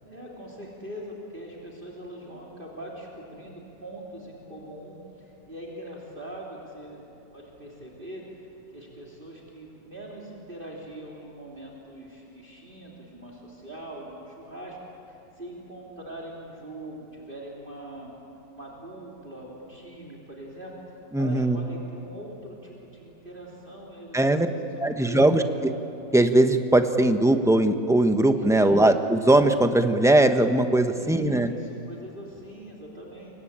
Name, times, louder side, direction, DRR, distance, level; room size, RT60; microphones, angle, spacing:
voice 1, 0.0-8.5 8.7-14.8 15.1-18.1 18.5-24.4 24.8-25.5 28.3-28.8 30.8-33.4, right 1 dB, 30° right, -3 dB, 3.4 m, -42 dB
voice 2, 21.1-21.6 24.1-24.5 24.8-25.7 26.1-31.5, right 1 dB, ahead, 7 dB, 0.8 m, -20 dB
28.5 x 24.0 x 8.8 m, 2.8 s
omnidirectional pair, 1.8 m